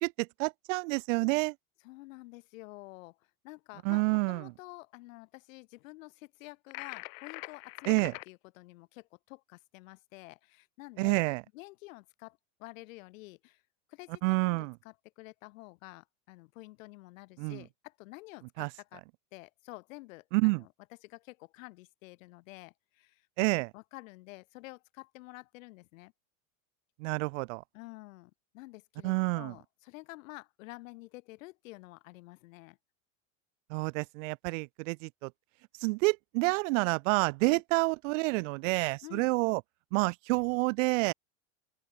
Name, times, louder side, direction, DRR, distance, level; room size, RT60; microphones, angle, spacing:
voice 1, 0.0-1.5 3.8-4.5 7.9-8.1 11.0-11.4 14.2-14.7 17.4-17.6 18.6-18.7 20.3-20.6 23.4-23.7 27.0-27.6 29.0-29.5 33.7-35.3 35.8-39.6 39.9-41.1, right 27 dB, 65° right, 1.4 m, -28 dB
voice 2, 1.8-3.2 3.4-11.1 11.5-13.6 13.9-19.0 19.3-20.7 21.0-23.5 23.7-26.1 27.7-32.8 37.4-37.6 39.0-39.3, left 22 dB, 75° left, 4.3 m, -50 dB
sound 1, 6.7-8.3, left 40 dB or more, 55° left, 1.5 m, -43 dB
open air
supercardioid pair, 145°, 40 cm